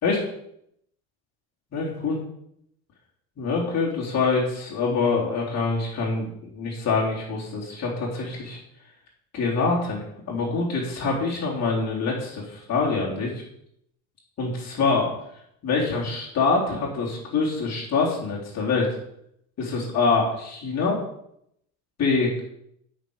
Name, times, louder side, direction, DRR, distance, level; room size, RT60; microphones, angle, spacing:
voice 1, 1.7-2.2 3.4-8.6 9.3-13.4 14.4-15.1 15.6-18.9 19.6-21.0 22.0-22.4, left 4 dB, 40° left, -4 dB, 3.8 m, -25 dB
9.0 x 6.3 x 6.6 m, 0.75 s
supercardioid pair, 105°, 41 cm